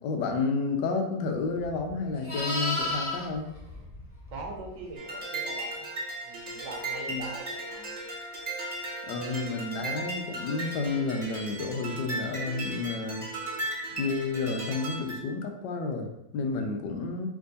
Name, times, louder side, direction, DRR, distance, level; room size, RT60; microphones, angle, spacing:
voice 1, 0.0-3.5 7.1-7.2 9.1-13.2 14.0-17.3, left 4 dB, 80° left, 3 dB, 1.3 m, -31 dB
Livestock farm animals working animals, 1.5-4.8 9.2-9.4, left 2 dB, 45° left, 0.4 m, -34 dB
voice 2, 4.3-6.0 6.2-7.9 13.6-13.7, right 3 dB, 85° right, 0 dB, 1.5 m, -42 dB
sound 1, 4.9-15.2, right 1 dB, 40° right, 0.6 m, -36 dB
3.5 x 3.1 x 3.9 m, 0.83 s
omnidirectional pair, 1.9 m